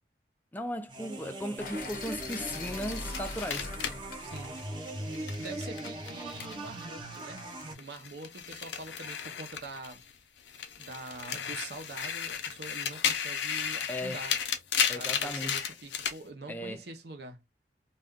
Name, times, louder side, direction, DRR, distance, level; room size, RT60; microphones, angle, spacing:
voice 1, 0.5-3.8 13.9-14.3 14.9-15.6 16.5-16.8, equal, 10° left, 0.4 m, -37 dB
sound 1, 0.9-7.7, right 1 dB, 25° right, 0.7 m, -40 dB
sound 2, 1.6-5.6, left 3 dB, 50° left, 0.6 m, -42 dB
sound 3, 2.3-6.8 7.1-10.1 10.5-16.2, left 7 dB, 90° left, 0.6 m, -34 dB
voice 2, 4.2-4.6 5.4-10.0 10.8-14.3 14.9-17.4, right 3 dB, 65° right, 0.7 m, -44 dB
2.4 x 2.2 x 3.5 m
head